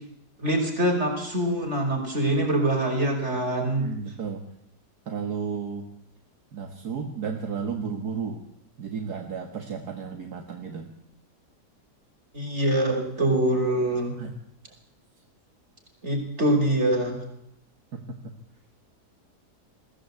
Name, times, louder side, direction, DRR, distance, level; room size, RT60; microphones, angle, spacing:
voice 1, 0.4-3.9 12.3-14.1 16.0-17.2, right 1 dB, 40° right, 1 dB, 5.7 m, -24 dB
voice 2, 3.7-4.4 5.1-5.9 6.5-8.4 8.8-10.9 14.2-14.3 17.9-18.3, right 6 dB, 70° right, 4 dB, 2.2 m, -33 dB
21.5 x 16.5 x 8.5 m, 0.75 s
omnidirectional pair, 1.8 m